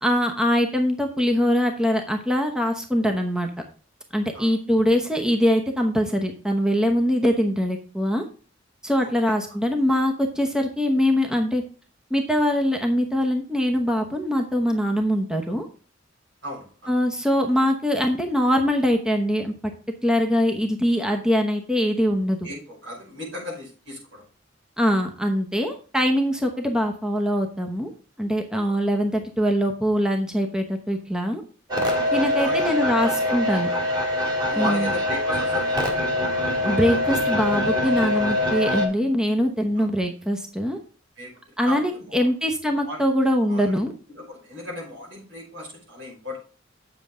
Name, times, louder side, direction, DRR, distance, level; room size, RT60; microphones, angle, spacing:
voice 1, 0.0-3.5 4.1-8.2 8.8-11.6 12.1-15.7 16.9-19.5 20.0-22.4 24.8-27.9 28.2-31.4 32.1-33.7 34.6-34.9 36.6-40.8 41.6-43.9, equal, 5° right, 3 dB, 0.9 m, -23 dB
voice 2, 16.4-16.9 22.4-24.2 28.6-28.8 31.8-33.2 33.7-33.8 34.5-35.9 39.8-39.9 41.2-41.3 41.6-42.3 42.8-43.0 43.5-43.6 44.1-46.4, left 1 dB, 75° right, -2 dB, 5.4 m, -36 dB
sound 1, 31.7-38.9, left 1 dB, 25° right, 2.2 m, -24 dB
8.6 x 7.5 x 3.7 m, 0.38 s
head